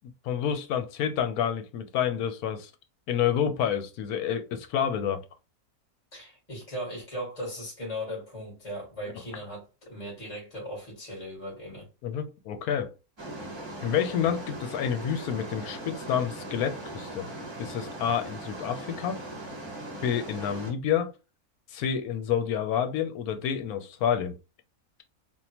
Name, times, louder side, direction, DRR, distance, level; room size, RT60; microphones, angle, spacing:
voice 1, 0.0-2.7 3.1-5.2 12.0-12.9 13.8-17.3 17.6-19.2 20.0-21.1 21.7-24.3, left 8 dB, 80° left, 1.1 m, -29 dB
voice 2, 6.1-11.9, equal, 25° left, 1.7 m, -38 dB
sound 1, 13.2-20.7, right 1 dB, 25° right, 0.7 m, -39 dB
3.6 x 2.5 x 2.8 m
omnidirectional pair, 1.6 m